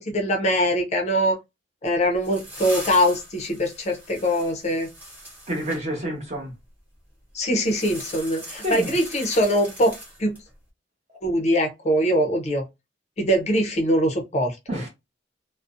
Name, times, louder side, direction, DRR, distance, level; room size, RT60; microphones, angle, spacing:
voice 1, 0.0-1.4 1.8-4.9 7.3-10.4 11.2-12.6 13.2-14.9, equal, 40° left, 0.5 m, -23 dB
sound 1, 1.8-5.8 7.6-10.5, equal, 10° right, 1.0 m, -40 dB
voice 2, 5.5-6.5 8.6-8.9 14.7-14.9, equal, 40° right, 1.0 m, -28 dB
2.5 x 2.0 x 2.4 m
head